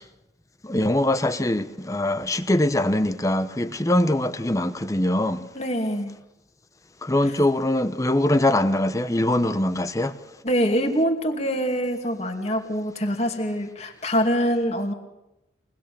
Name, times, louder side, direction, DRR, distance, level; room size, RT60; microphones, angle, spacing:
voice 1, 0.6-5.4 7.0-10.1, left 1 dB, 20° left, 0.9 m, -22 dB
voice 2, 5.5-6.1 7.2-7.3 10.4-14.9, equal, 35° left, 2.6 m, -24 dB
25.0 x 20.0 x 6.9 m
head